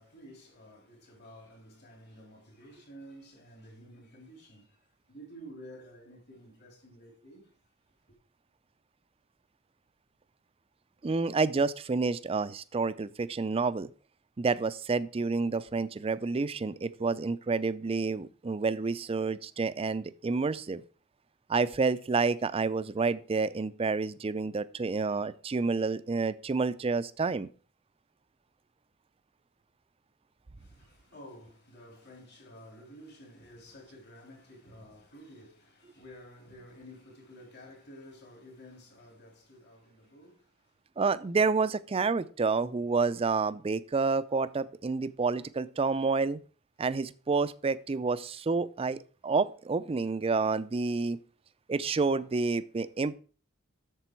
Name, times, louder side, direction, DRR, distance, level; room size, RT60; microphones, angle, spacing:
voice 1, 0.0-7.6 8.1-8.2 30.6-40.8 52.2-52.4, equal, 55° left, 3.3 m, -52 dB
voice 2, 11.0-13.9 14.4-20.8 21.5-27.5 41.0-46.4 46.8-51.2 51.7-53.1, right 4 dB, 30° right, 0.4 m, -29 dB
8.1 x 6.9 x 4.5 m
head